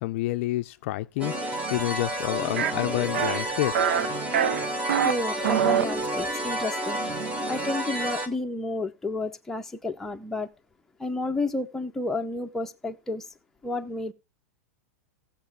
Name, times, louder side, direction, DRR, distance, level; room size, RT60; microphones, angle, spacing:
voice 1, 0.0-3.9, left 17 dB, 55° left, 0.4 m, -29 dB
sound 1, 1.2-8.3, right 1 dB, 15° right, 1.3 m, -30 dB
sound 2, 2.6-2.7 3.1-3.4 3.7-4.1 4.3-5.1 5.4-5.9, right 9 dB, 80° right, 0.6 m, -24 dB
voice 2, 5.0-7.0 7.5-10.5 11.0-13.3 13.6-14.1, left 2 dB, 5° left, 0.7 m, -31 dB
16.0 x 7.3 x 3.4 m
supercardioid pair, 140°, 8 cm